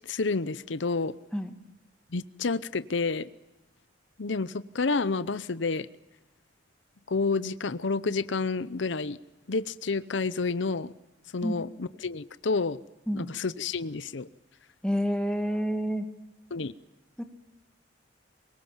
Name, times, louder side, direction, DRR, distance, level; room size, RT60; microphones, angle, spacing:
voice 1, 0.1-1.1 2.1-3.3 4.2-5.9 7.1-9.2 9.5-10.9 11.3-12.8 13.1-14.3 16.5-16.7, left 4 dB, 80° left, 16 dB, 0.7 m, -29 dB
voice 2, 14.8-16.1 17.2-17.3, equal, 5° left, 6 dB, 1.8 m, -28 dB
24.0 x 22.0 x 7.4 m, 0.97 s
head